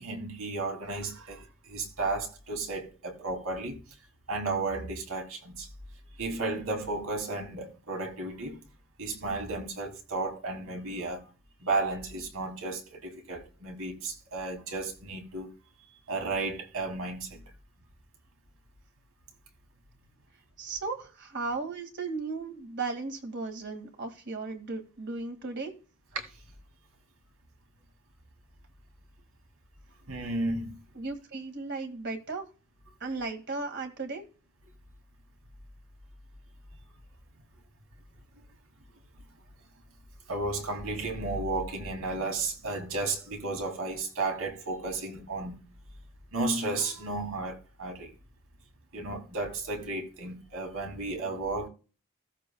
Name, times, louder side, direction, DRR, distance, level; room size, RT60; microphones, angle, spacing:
voice 1, 0.0-3.8 4.3-5.7 6.2-8.6 9.0-11.2 11.6-15.5 16.1-17.4 26.1-26.3 30.1-30.8 40.3-45.6 46.3-48.1 48.9-51.7, right 3 dB, 85° right, 2.6 m, -33 dB
voice 2, 20.6-25.7 30.9-32.4 33.0-34.2, right 3 dB, 55° right, 2.0 m, -36 dB
16.0 x 7.4 x 2.3 m
head